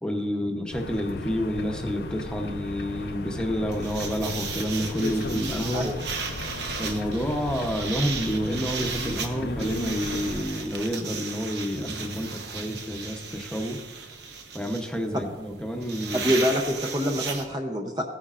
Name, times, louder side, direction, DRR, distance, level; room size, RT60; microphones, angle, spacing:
voice 1, 0.0-5.9 6.8-13.8 14.5-16.3, equal, 5° left, 2 dB, 0.8 m, -29 dB
sound 1, 0.7-10.5, left 3 dB, 60° left, 0.5 m, -36 dB
sound 2, 3.7-17.4, right 5 dB, 75° right, 1.0 m, -35 dB
voice 2, 16.2-18.0, equal, 25° right, 2 dB, 0.6 m, -25 dB
15.5 x 9.6 x 2.5 m, 1.3 s
head